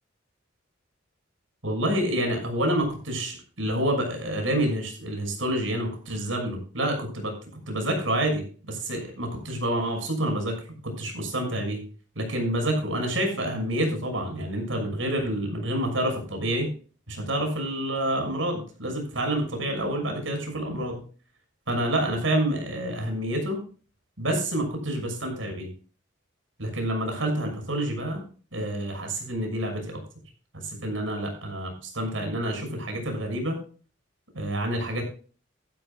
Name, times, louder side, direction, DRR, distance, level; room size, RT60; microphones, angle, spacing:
voice 1, 1.6-7.3 7.7-11.8 12.1-16.7 17.1-21.0 21.7-23.6 24.2-25.7 26.6-28.2 28.5-30.0 30.6-33.6 34.3-35.0, right 1 dB, 85° right, 3 dB, 6.4 m, -28 dB
16.5 x 12.5 x 2.4 m, 0.38 s
head